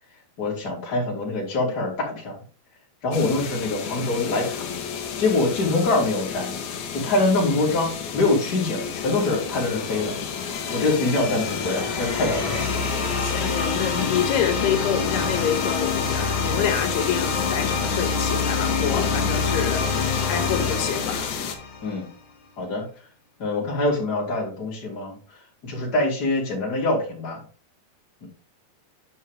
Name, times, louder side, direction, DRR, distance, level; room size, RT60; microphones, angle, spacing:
voice 1, 0.4-2.4 3.0-4.8 5.2-6.5 6.9-10.2 10.7-12.9 21.8-22.1 22.6-22.9 23.4-25.2 25.6-27.4 28.2-28.3, left 2 dB, 25° left, 3.0 m, -24 dB
sound 1, 3.1-21.5, left 7 dB, 65° left, 1.9 m, -32 dB
sound 2, 8.3-22.1, left 4 dB, 45° left, 3.3 m, -27 dB
voice 2, 13.1-21.3, left 8 dB, 85° left, 3.3 m, -27 dB
9.4 x 5.3 x 3.4 m
omnidirectional pair, 4.5 m